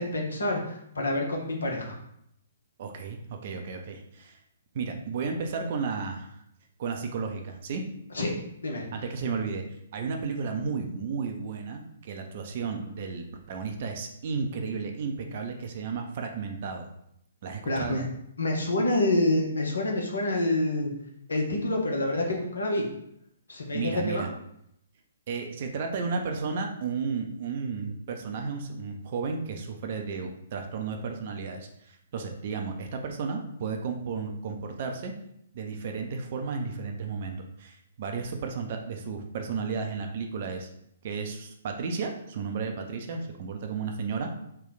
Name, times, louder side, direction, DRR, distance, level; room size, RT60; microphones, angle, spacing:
voice 1, 0.0-2.0 8.1-8.4 8.6-8.9 17.7-18.0 18.4-20.9 21.3-22.9 23.5-24.3, left 1 dB, 70° left, 1 dB, 0.9 m, -27 dB
voice 2, 2.8-4.4 4.7-6.3 6.8-7.8 8.9-9.6 9.9-16.9 17.4-18.0 23.7-24.3 25.3-35.1 35.5-40.7 41.0-44.3, right 5 dB, 45° right, 4 dB, 0.5 m, -33 dB
3.2 x 2.3 x 4.0 m, 0.75 s
figure-of-eight pair, 125°, 0 cm